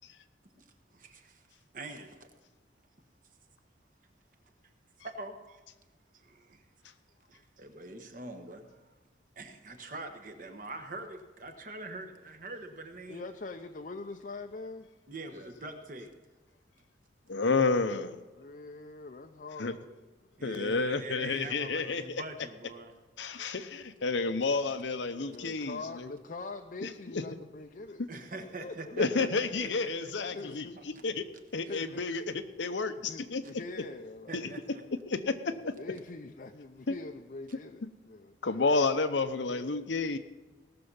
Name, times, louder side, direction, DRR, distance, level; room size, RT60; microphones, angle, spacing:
voice 1, 0.9-1.4 1.7-2.3 5.0-5.6 6.1-6.6 7.3-9.0 9.4-13.2 15.1-16.1 20.4-23.0 28.1-30.1 30.7-31.0 31.7-31.8 34.3-34.9, right 2 dB, 45° right, 5 dB, 1.2 m, -44 dB
voice 2, 13.1-14.9 18.4-19.9 25.2-28.2 28.6-29.1 30.3-30.7 31.1-31.2 31.7-32.0 33.1-34.6 35.8-38.4 39.4-39.8 40.0-40.1, left 3 dB, 45° left, 4 dB, 0.5 m, -43 dB
voice 3, 17.3-18.1 19.6-19.8 20.4-22.2 23.2-26.1 26.8-27.2 29.0-30.7 31.0-31.2 31.5-33.4 34.3-34.4 35.1-35.7 36.9-37.0 38.4-40.2, left 4 dB, 80° left, 10 dB, 0.8 m, -30 dB
18.0 x 6.9 x 5.5 m, 1.2 s
head